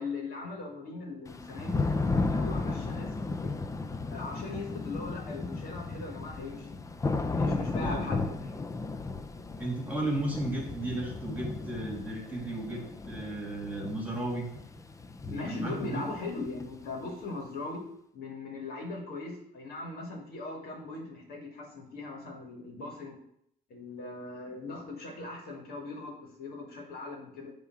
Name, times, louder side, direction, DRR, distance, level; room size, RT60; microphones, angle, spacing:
voice 1, 0.0-1.8 2.3-3.6 4.1-6.9 7.2-8.7 15.3-17.8 18.1-23.2 23.7-27.5, left 3 dB, 65° left, 0 dB, 2.6 m, -39 dB
Thunder / Rain, 1.3-17.0, left 3 dB, 20° left, 0.6 m, -34 dB
voice 2, 7.8-8.1 9.6-14.5 15.2-16.0, right 1 dB, 10° right, -1 dB, 2.6 m, -34 dB
9.0 x 3.8 x 6.1 m, 0.72 s
cardioid pair, 110°, 17 cm